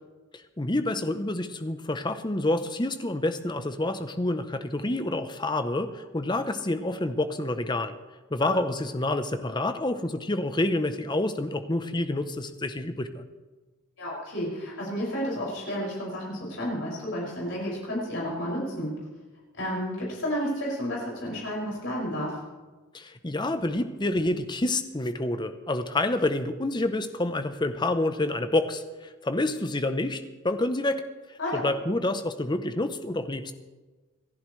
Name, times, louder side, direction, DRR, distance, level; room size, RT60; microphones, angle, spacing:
voice 1, 0.3-8.0 8.3-13.2 22.9-31.0 31.5-33.5, left 2 dB, 20° left, 9 dB, 0.8 m, -28 dB
voice 2, 14.0-18.9 19.6-22.4 31.4-31.6, equal, 60° left, -4 dB, 6.2 m, -31 dB
27.5 x 11.0 x 3.3 m, 1.3 s
head